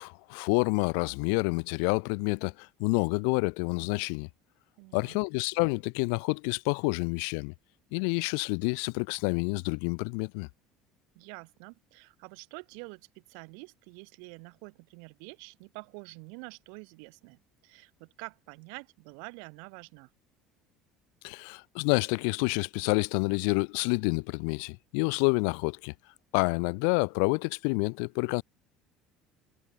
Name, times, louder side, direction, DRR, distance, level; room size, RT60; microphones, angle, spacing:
voice 1, 0.0-4.3 4.9-7.5 7.9-10.5 21.2-25.9 26.3-28.4, left 40 dB or more, 80° left, 1.0 m, -28 dB
voice 2, 4.8-5.2 11.1-20.1, right 40 dB or more, 75° right, 4.9 m, -47 dB
cardioid pair, 175°, 0 cm